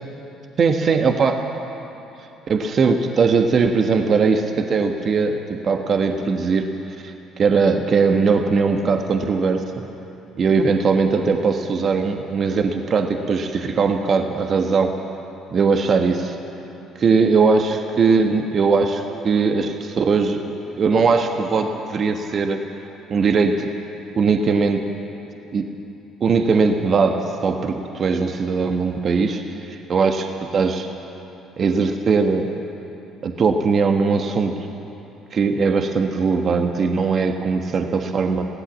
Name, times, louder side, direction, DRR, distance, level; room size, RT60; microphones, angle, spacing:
voice 1, 0.6-1.4 2.5-6.7 7.0-9.6 10.4-15.0 15.5-16.4 17.0-20.4 20.8-22.6 23.1-23.7 24.1-24.9 25.5-25.7 26.2-29.4 29.7-30.9 31.6-32.5 33.2-34.7 35.3-38.5, right 4 dB, 45° right, 5 dB, 1.4 m, -20 dB
22.0 x 17.0 x 7.4 m, 3.0 s
hypercardioid pair, 50°, 0 cm